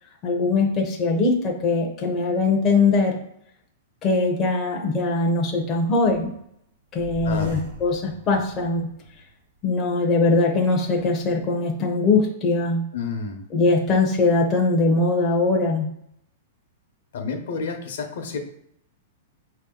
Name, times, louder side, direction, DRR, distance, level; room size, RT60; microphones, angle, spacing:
voice 1, 0.2-3.2 4.0-6.3 6.9-8.9 9.6-12.9 13.5-15.9, left 3 dB, 20° left, 0 dB, 0.6 m, -21 dB
sound 1, 5.3-6.5 6.9-9.3 9.7-9.8 10.6-11.3, right 1 dB, 55° right, 0.8 m, -39 dB
voice 2, 7.2-7.6 12.9-13.4 17.1-18.4, left 5 dB, 70° left, 4 dB, 0.9 m, -30 dB
4.9 x 2.8 x 3.7 m, 0.73 s
supercardioid pair, 165°, 0 cm